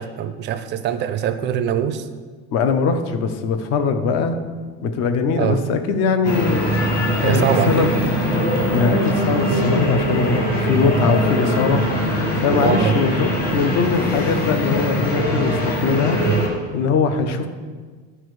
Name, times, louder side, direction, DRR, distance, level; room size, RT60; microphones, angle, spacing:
voice 1, 0.0-2.1 5.4-5.6 7.2-7.9 12.5-13.0 16.2-16.5, right 9 dB, 35° right, 10 dB, 0.4 m, -22 dB
voice 2, 2.5-4.4 4.8-6.7 7.2-7.9 8.7-11.8 12.4-16.2 16.7-17.5, left 5 dB, 55° left, 8 dB, 0.7 m, -21 dB
sound 1, 6.2-16.5, equal, 30° left, 1.5 m, -21 dB
11.0 x 4.5 x 3.2 m, 1.5 s
cardioid pair, 165°, 30 cm